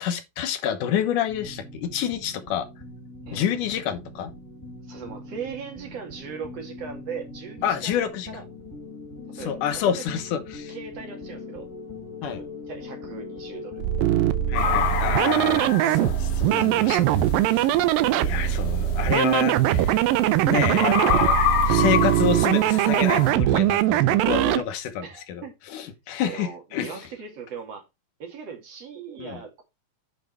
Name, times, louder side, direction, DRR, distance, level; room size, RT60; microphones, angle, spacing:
voice 1, 0.0-2.7 3.3-4.3 7.6-8.3 9.3-10.7 12.2-12.4 14.5-17.2 17.4-17.8 18.2-20.1 20.5-21.4 21.7-25.4 25.7-27.0 29.2-29.4, left 9 dB, 70° left, 2.5 m, -28 dB
sound 1, 1.3-15.7, left 3 dB, 5° left, 3.5 m, -41 dB
voice 2, 4.9-8.4 9.4-10.0 10.7-11.7 12.2-14.1 25.0-25.5 26.2-27.8 28.2-29.6, right 6 dB, 50° right, 3.2 m, -39 dB
sound 2, 13.8-24.6, right 14 dB, 80° right, 2.3 m, -21 dB
sound 3, 14.5-23.3, left 7 dB, 50° left, 2.1 m, -28 dB
9.1 x 5.3 x 4.6 m
omnidirectional pair, 4.1 m